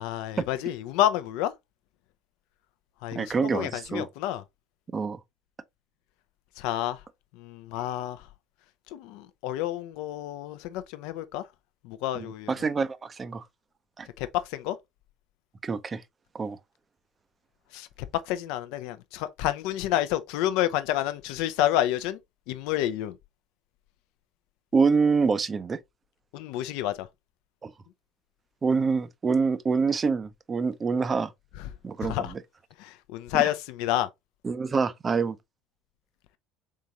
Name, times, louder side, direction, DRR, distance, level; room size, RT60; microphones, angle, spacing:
voice 1, 0.0-1.5 3.0-4.4 6.6-7.0 7.4-8.2 8.9-11.4 11.8-12.5 14.2-14.8 17.7-17.9 18.3-22.2 22.5-23.1 26.3-27.1 32.0-32.3 32.8-34.1, left 13 dB, 65° left, 0.5 m, -29 dB
voice 2, 3.1-4.1 4.9-5.2 12.2-13.4 14.0-14.1 15.6-16.0 16.3-16.6 24.7-25.8 27.6-27.7 28.6-31.3 31.8-32.4 33.3-33.5 34.4-35.4, right 5 dB, 30° right, 0.5 m, -26 dB
3.7 x 3.6 x 2.8 m
hypercardioid pair, 65°, 0 cm